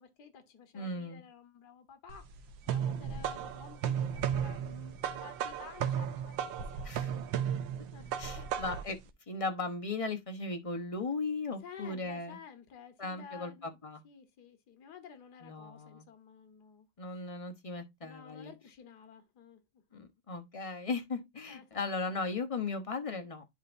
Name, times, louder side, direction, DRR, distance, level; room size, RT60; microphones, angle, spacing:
voice 1, 0.0-2.3 2.7-7.3 7.9-8.5 11.6-13.8 14.0-16.9 18.0-19.6 21.5-21.9, left 6 dB, 60° left, 1.8 m, -52 dB
voice 2, 0.7-1.2 6.8-7.1 8.2-9.0 9.3-12.4 13.0-14.0 15.4-16.1 17.0-18.5 19.9-23.5, left 3 dB, 30° left, 0.6 m, -37 dB
sound 1, 2.1-9.0, right 8 dB, 85° right, 1.5 m, -35 dB
10.5 x 4.1 x 2.6 m
omnidirectional pair, 2.1 m